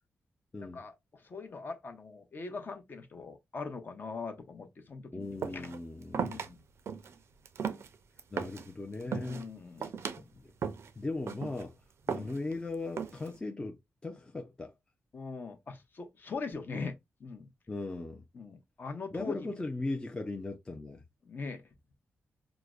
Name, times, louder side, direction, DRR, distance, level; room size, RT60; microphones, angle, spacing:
voice 1, 0.6-5.7 6.2-6.6 9.0-9.9 12.1-12.3 15.1-16.9 17.2-17.5 18.3-19.5 21.2-21.6, left 4 dB, 45° left, 0.8 m, -41 dB
voice 2, 5.1-6.4 8.3-9.5 9.8-9.9 10.2-10.5 11.0-11.8 12.1-14.7 17.7-18.2 19.1-21.0, left 2 dB, 20° left, 0.5 m, -38 dB
sound 1, 5.4-5.8 6.1-6.5 6.9-7.1 7.5-8.7 9.0-9.4 9.8-10.2 10.6-10.9 11.3-11.6 12.1-12.5 13.0-13.4, right 6 dB, 65° right, 0.4 m, -36 dB
4.8 x 2.1 x 2.4 m
wide cardioid pair, 110°, 5 cm